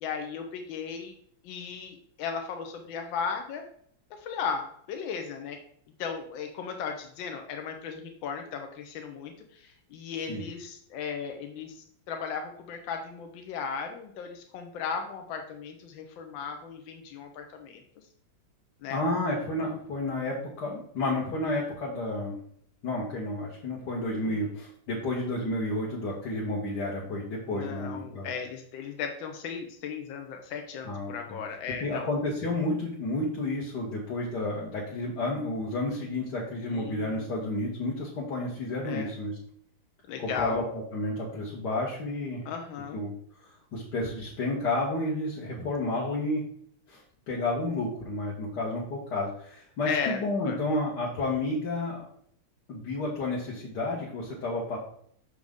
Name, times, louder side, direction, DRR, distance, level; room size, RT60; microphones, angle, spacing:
voice 1, 0.0-1.1 1.4-3.6 4.2-5.6 6.0-17.8 18.8-19.0 24.2-24.5 27.5-32.1 36.7-37.2 38.8-39.1 40.1-40.6 42.4-43.0 46.0-46.2 49.9-50.6, left 6 dB, 80° left, 4 dB, 1.5 m, -36 dB
voice 2, 18.9-22.3 22.8-28.3 30.8-31.4 31.8-39.4 40.2-42.4 42.9-43.1 43.4-46.4 46.9-52.1 52.7-54.8, left 2 dB, 65° left, -4 dB, 1.7 m, -31 dB
6.3 x 5.2 x 3.5 m, 0.66 s
omnidirectional pair, 2.1 m